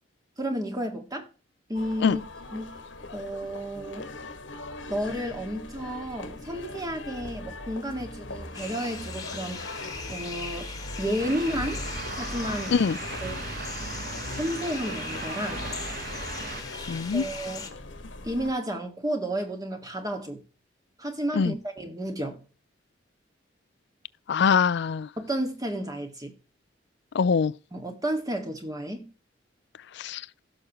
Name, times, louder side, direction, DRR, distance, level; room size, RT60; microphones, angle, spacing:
voice 1, 0.4-1.3 1.7-2.2 2.5-2.8 3.1-4.1 4.9-9.7 10.1-11.8 12.2-12.8 13.2-13.5 14.3-15.6 17.1-17.7 18.2-20.4 21.0-22.4 25.2-26.3 27.7-29.1, equal, 20° right, 1.9 m, -32 dB
sound 1, 1.7-18.5, left 2 dB, 85° left, 1.5 m, -40 dB
sound 2, 8.5-17.7, left 4 dB, 20° left, 1.6 m, -39 dB
sound 3, 11.2-16.6, right 4 dB, 55° right, 1.1 m, -38 dB
voice 2, 16.9-17.2 21.3-21.5 24.3-25.1 27.1-27.5 30.0-30.2, left 6 dB, 65° left, 0.4 m, -23 dB
16.5 x 6.4 x 3.0 m
head